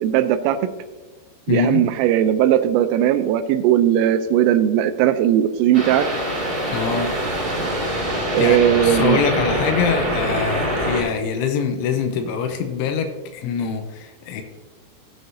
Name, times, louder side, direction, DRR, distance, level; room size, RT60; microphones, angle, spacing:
voice 1, 0.0-0.7 1.5-6.1 8.3-9.2, right 11 dB, 85° right, 10 dB, 3.2 m, -18 dB
voice 2, 1.5-1.9 6.7-7.2 8.4-14.4, left 6 dB, 85° left, 6 dB, 3.1 m, -24 dB
sound 1, 5.7-11.0, equal, 15° right, 2.0 m, -24 dB
16.0 x 7.9 x 2.7 m, 1.2 s
omnidirectional pair, 5.8 m